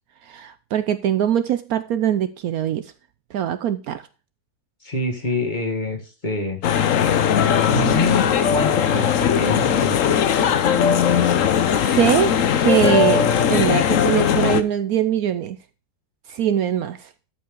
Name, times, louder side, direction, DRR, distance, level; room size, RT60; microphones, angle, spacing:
voice 1, 0.2-2.9 3.3-4.0 11.3-11.5 11.8-15.6 16.3-17.1, right 10 dB, 70° right, 1.0 m, -22 dB
voice 2, 4.8-6.6 7.7-10.5, left 2 dB, 30° left, 2.0 m, -26 dB
sound 1, 6.6-14.6, left 8 dB, 60° left, 1.1 m, -19 dB
13.0 x 5.5 x 3.7 m
omnidirectional pair, 1.8 m